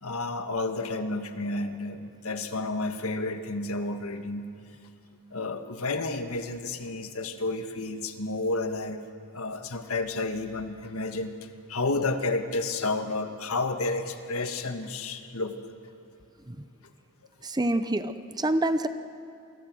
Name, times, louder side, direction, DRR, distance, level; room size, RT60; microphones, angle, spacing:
voice 1, 0.0-4.5 5.3-9.0 9.3-11.3 11.7-15.6, left 2 dB, 70° left, 7 dB, 1.6 m, -31 dB
voice 2, 17.4-18.9, right 1 dB, 20° right, 10 dB, 0.8 m, -26 dB
28.5 x 24.0 x 6.3 m, 2.6 s
head